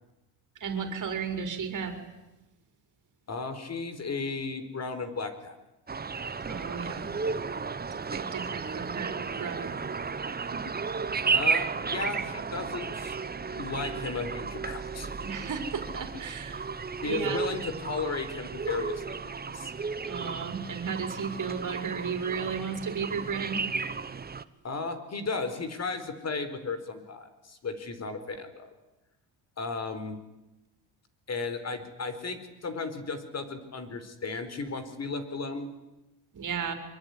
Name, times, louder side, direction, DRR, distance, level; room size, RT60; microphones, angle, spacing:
voice 1, 0.6-2.0 6.4-7.1 8.1-9.8 10.5-10.6 15.2-16.6 17.0-17.5 20.0-23.6 36.3-36.7, right 6 dB, 45° right, 6 dB, 5.3 m, -34 dB
voice 2, 3.3-5.6 11.3-13.2 13.6-15.1 17.0-19.7 24.6-28.7 29.6-30.2 31.3-35.7, left 4 dB, 35° left, 11 dB, 4.7 m, -35 dB
sound 1, 5.9-24.4, right 5 dB, 20° right, 1.2 m, -33 dB
24.5 x 23.0 x 10.0 m, 0.98 s
cardioid pair, 115°, 43 cm